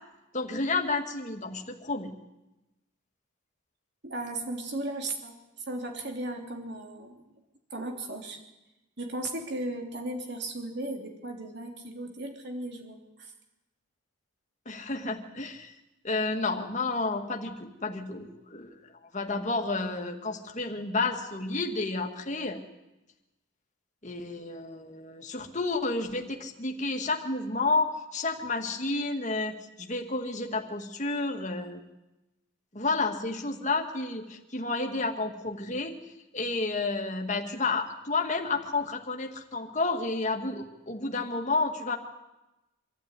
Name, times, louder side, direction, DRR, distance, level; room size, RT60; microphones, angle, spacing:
voice 1, 0.3-2.1 14.7-15.7 16.0-18.8 19.1-22.6 24.0-31.8 32.7-35.9 36.3-42.0, left 3 dB, 35° left, 3 dB, 2.1 m, -31 dB
voice 2, 4.0-7.3 7.7-8.4 9.0-13.3, right 2 dB, 50° right, 3 dB, 3.3 m, -36 dB
25.5 x 12.5 x 9.9 m, 0.99 s
head